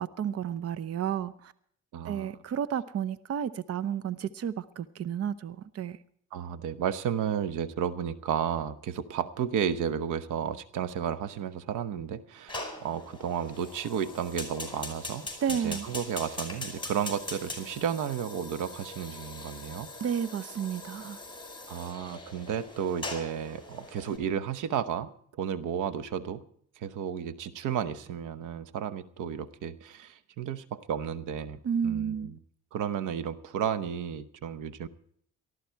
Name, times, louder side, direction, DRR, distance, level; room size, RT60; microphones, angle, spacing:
voice 1, 0.0-1.5 2.0-6.0 15.4-15.9 20.0-21.2 31.6-32.3, right 8 dB, 50° right, 15 dB, 0.8 m, -32 dB
voice 2, 1.9-2.4 6.3-19.9 21.7-25.1 25.4-26.4 26.8-32.4 32.7-34.9, right 8 dB, 85° right, 13 dB, 1.0 m, -33 dB
Fire, 12.5-24.2, left 2 dB, 15° left, 5.0 m, -41 dB
19.0 x 13.5 x 4.6 m, 0.63 s
cardioid pair, 90°, 30 cm